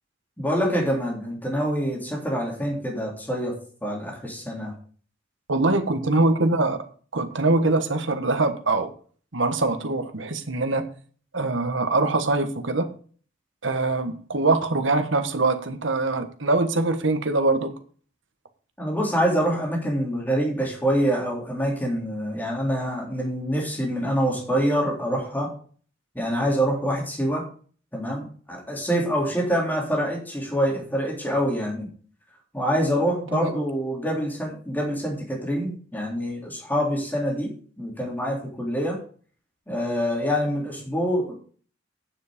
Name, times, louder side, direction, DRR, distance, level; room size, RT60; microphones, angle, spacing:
voice 1, 0.4-3.5 3.8-4.7 18.8-25.5 26.1-27.4 27.9-31.9 32.5-37.5 37.8-39.0 39.7-41.3, equal, 10° left, 3.5 m, -25 dB
voice 2, 5.5-6.8 7.1-8.9 9.3-10.9 11.3-12.9 13.6-17.7 33.3-33.5, right 2 dB, 75° right, 1.4 m, -23 dB
9.3 x 7.2 x 5.2 m
head